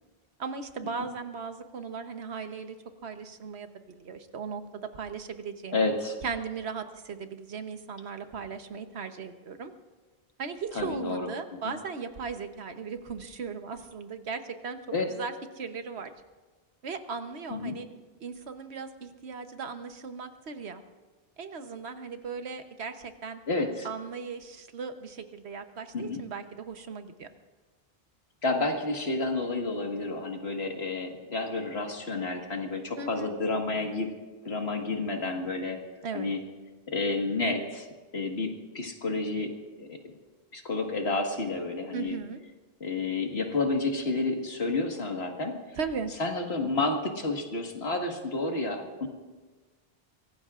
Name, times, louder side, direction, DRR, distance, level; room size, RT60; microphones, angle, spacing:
voice 1, 0.4-3.7 4.0-5.8 6.2-9.7 10.4-14.8 15.1-16.1 16.8-17.9 18.2-20.8 21.4-23.4 23.8-27.3 33.0-33.3 36.0-36.3 41.9-42.4 45.8-46.1, right 5 dB, 85° right, 8 dB, 1.3 m, -37 dB
voice 2, 5.7-6.2 10.7-11.3 11.6-11.7 14.9-15.1 17.5-17.8 23.5-23.9 25.9-26.2 28.4-34.1 34.4-35.8 36.1-36.4 36.9-37.9 38.1-39.5 39.8-40.0 40.5-42.2 42.8-45.8 46.2-49.1, left 3 dB, 75° left, 3 dB, 2.0 m, -30 dB
24.0 x 17.5 x 2.5 m, 1.3 s
omnidirectional pair, 1.1 m